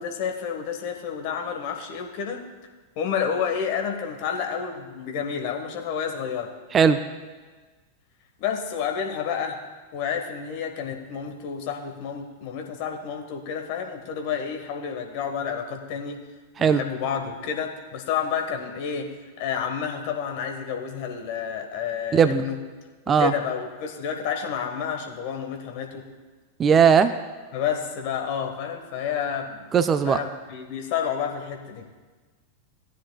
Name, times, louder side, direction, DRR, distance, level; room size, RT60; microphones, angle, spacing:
voice 1, 0.0-2.4 2.9-6.5 8.4-9.6 9.9-16.2 16.6-22.6 23.1-26.1 27.5-29.7 30.0-31.8, left 7 dB, 45° left, 4 dB, 1.4 m, -30 dB
voice 2, 22.1-22.4 23.1-23.3 26.6-27.1 29.7-30.2, right 7 dB, 25° right, 11 dB, 0.4 m, -18 dB
17.5 x 9.9 x 2.3 m, 1.4 s
figure-of-eight pair, 90°, 0 cm